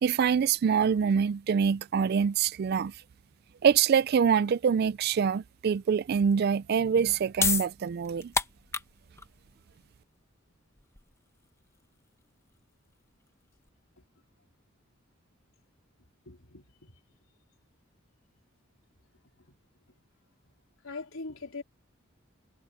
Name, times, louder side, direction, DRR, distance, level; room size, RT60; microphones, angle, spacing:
voice 1, 0.0-2.9 3.6-8.3, right 7 dB, 50° right, 0.3 m, -25 dB
sound 1, 6.9-13.7, left 4 dB, 15° left, 1.1 m, -34 dB
voice 2, 16.3-16.9 20.8-21.6, left 3 dB, 80° left, 4.0 m, -41 dB
head